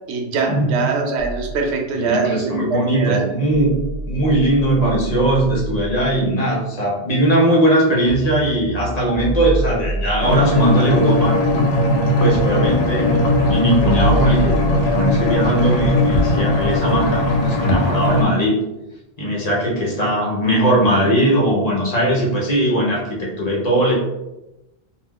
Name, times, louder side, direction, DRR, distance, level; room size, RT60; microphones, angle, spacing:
voice 1, 0.1-3.3, right 4 dB, 85° right, 3 dB, 0.8 m, -22 dB
sound 1, 1.2-6.3 8.1-15.5, right 1 dB, ahead, 1.3 m, -28 dB
voice 2, 1.9-3.8 4.1-11.4 12.2-18.5 19.2-23.9, right 1 dB, 45° left, -4 dB, 0.7 m, -19 dB
sound 2, 10.2-18.2, left 1 dB, 75° left, 0.8 m, -18 dB
3.4 x 2.4 x 2.3 m, 0.96 s
omnidirectional pair, 1.1 m